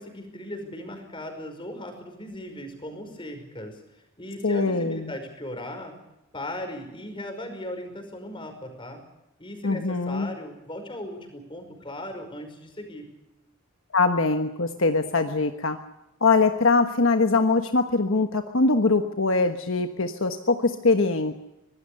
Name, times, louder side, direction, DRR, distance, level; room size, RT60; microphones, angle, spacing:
voice 1, 0.0-6.0 6.3-9.0 9.4-13.1, left 1 dB, 25° left, 6 dB, 5.3 m, -38 dB
voice 2, 4.4-5.1 9.6-10.3 13.9-15.8 16.2-21.3, left 3 dB, 65° left, 7 dB, 1.3 m, -22 dB
24.5 x 19.5 x 6.8 m, 0.91 s
head